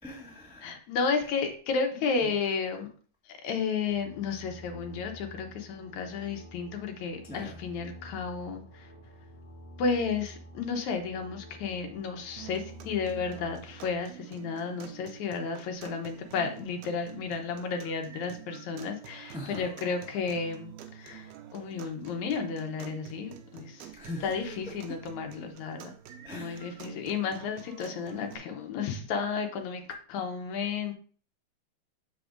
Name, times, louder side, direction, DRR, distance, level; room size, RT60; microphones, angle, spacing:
voice 1, 0.0-0.7 2.2-2.3 7.2-7.6 19.3-19.7 23.9-24.3 24.9-25.0 26.2-26.8, left 1 dB, 5° right, -2 dB, 0.5 m, -41 dB
voice 2, 0.6-2.9 3.3-8.9 9.8-23.9 24.2-25.9 26.3-30.9, left 5 dB, 70° left, 5 dB, 2.2 m, -32 dB
sound 1, 3.9-14.0, equal, 30° left, 1.3 m, -49 dB
sound 2, 12.4-28.4, right 10 dB, 85° right, 2.2 m, -48 dB
7.5 x 7.0 x 2.5 m, 0.42 s
omnidirectional pair, 3.5 m